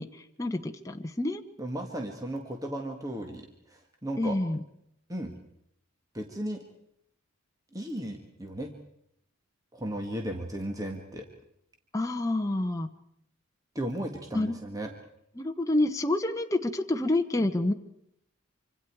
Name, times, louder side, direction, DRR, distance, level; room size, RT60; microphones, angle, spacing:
voice 1, 0.0-1.4 4.2-4.6 11.9-12.9 14.3-14.6 15.4-17.7, left 2 dB, 15° left, 5 dB, 1.0 m, -28 dB
voice 2, 1.6-4.4 5.1-5.3 6.1-6.6 7.7-8.7 9.7-11.3 13.8-14.9, right 1 dB, 15° right, 3 dB, 1.8 m, -35 dB
26.5 x 25.5 x 4.7 m, 0.75 s
head